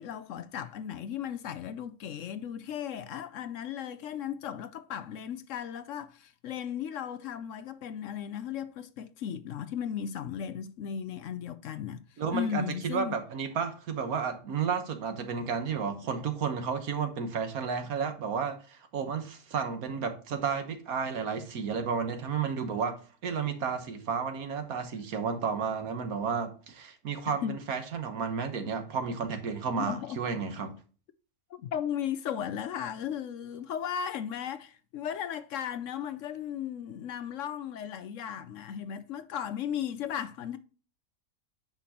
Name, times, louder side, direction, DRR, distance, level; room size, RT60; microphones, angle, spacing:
voice 1, 0.0-13.1 27.3-27.6 29.8-30.2 31.5-40.6, left 9 dB, 65° left, 0.9 m, -36 dB
voice 2, 12.2-23.0 23.2-30.7, right 6 dB, 75° right, 1.6 m, -32 dB
8.9 x 5.9 x 2.9 m
omnidirectional pair, 1.5 m